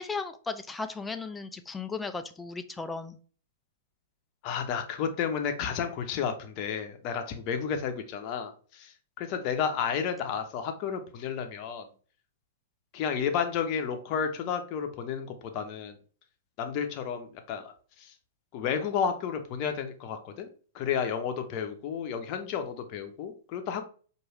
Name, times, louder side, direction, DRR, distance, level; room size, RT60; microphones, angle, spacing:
voice 1, 0.0-3.2, left 4 dB, 10° left, 9 dB, 0.4 m, -36 dB
voice 2, 4.4-11.8 12.9-16.0 16.6-17.7 18.0-18.1 18.5-20.5 20.7-23.8, left 7 dB, 40° left, 6 dB, 0.7 m, -32 dB
4.6 x 2.6 x 3.0 m, 0.41 s
figure-of-eight pair, 105°, 0 cm